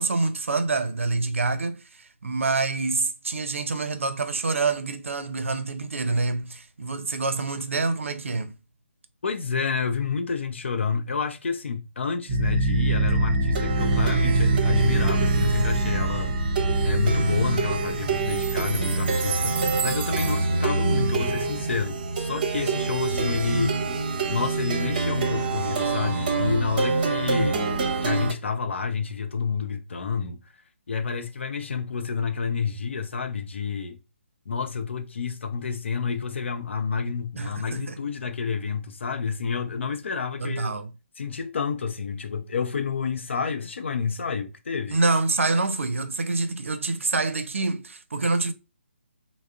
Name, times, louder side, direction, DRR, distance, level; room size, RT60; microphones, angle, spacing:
voice 1, 0.0-8.5 37.4-38.0 40.4-40.9 44.9-48.5, right 3 dB, 75° right, 0.5 m, -26 dB
voice 2, 9.2-16.3 16.8-19.6 19.8-23.8 24.3-27.8 28.0-30.4 30.9-34.0 34.5-40.7 41.2-45.0, left 5 dB, 65° left, 0.5 m, -29 dB
Plucked string instrument, 12.3-28.3, right 3 dB, 40° right, 0.7 m, -24 dB
3.5 x 2.0 x 2.3 m
figure-of-eight pair, 145°, 7 cm